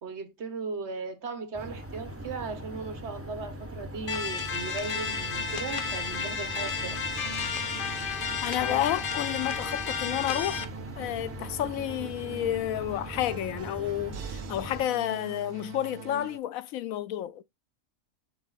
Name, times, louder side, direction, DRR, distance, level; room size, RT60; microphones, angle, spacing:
voice 1, 0.0-7.0, right 4 dB, 55° right, 1.3 m, -37 dB
sound 1, 1.5-14.8, equal, 15° right, 0.7 m, -41 dB
sound 2, 4.1-10.6, left 6 dB, 50° left, 0.8 m, -32 dB
sound 3, 4.8-16.4, right 10 dB, 90° right, 0.4 m, -44 dB
voice 2, 8.4-10.6 11.0-17.4, left 12 dB, 90° left, 1.0 m, -30 dB
11.0 x 4.0 x 2.4 m
omnidirectional pair, 1.4 m